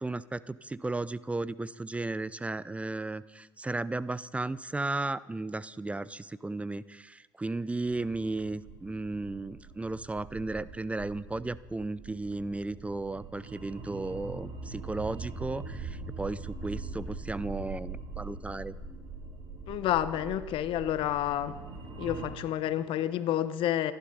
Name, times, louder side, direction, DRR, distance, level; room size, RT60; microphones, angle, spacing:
voice 1, 0.0-18.7, right 2 dB, 10° right, 0.5 m, -35 dB
sound 1, 7.8-22.3, right 4 dB, 50° right, 4.0 m, -42 dB
voice 2, 19.7-21.6 22.0-23.9, left 11 dB, 55° left, 0.9 m, -29 dB
27.0 x 11.5 x 4.1 m
hypercardioid pair, 65°, 11 cm